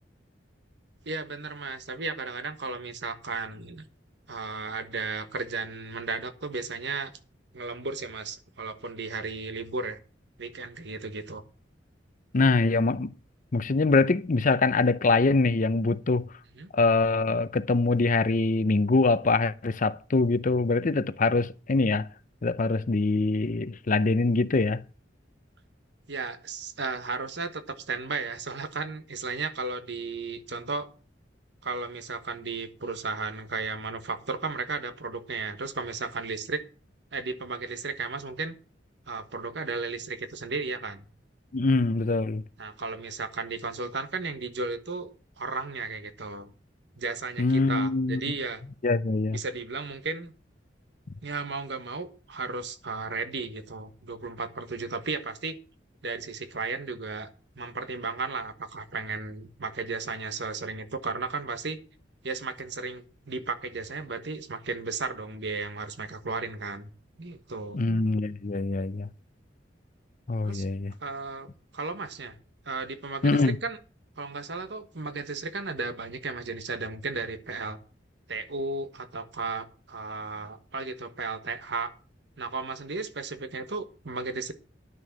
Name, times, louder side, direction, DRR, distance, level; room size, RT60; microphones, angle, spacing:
voice 1, 1.0-3.8 4.3-7.1 7.5-10.0 10.4-11.4 16.5-16.7 26.1-30.9 31.6-36.6 37.1-38.5 39.1-41.1 42.6-45.1 45.4-46.5 47.0-48.6 49.3-50.3 51.2-55.6 56.0-57.3 57.5-61.8 62.2-66.9 67.2-67.8 70.4-70.7 71.0-72.4 72.6-73.8 74.2-77.8 78.3-81.9 82.4-84.5, right 4 dB, 65° right, 1.3 m, -34 dB
voice 2, 12.3-13.1 13.5-16.3 16.7-22.1 22.4-24.8 41.5-42.4 47.4-48.2 48.8-49.4 67.7-69.1 70.3-70.9 73.2-73.6, left 3 dB, 45° left, 0.6 m, -24 dB
10.5 x 6.4 x 7.3 m
head